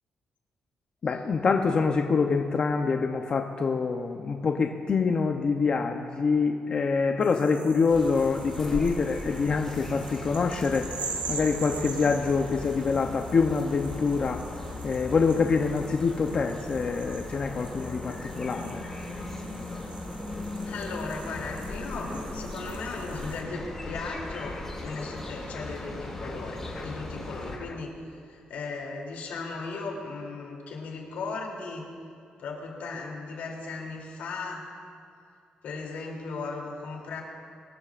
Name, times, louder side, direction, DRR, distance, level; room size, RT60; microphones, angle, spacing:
voice 1, 1.0-10.9 11.3-14.4 14.8-18.8 26.8-26.9, left 5 dB, 35° left, 3 dB, 0.6 m, -25 dB
sound 1, 7.2-23.4, right 5 dB, 55° right, 1.8 m, -44 dB
sound 2, 7.9-27.6, left 2 dB, 15° left, 2.4 m, -38 dB
voice 2, 20.6-31.9 32.4-34.6 35.6-37.2, left 4 dB, 80° left, -1 dB, 2.9 m, -37 dB
23.0 x 13.0 x 2.5 m, 2.4 s
cardioid pair, 150°, 3 cm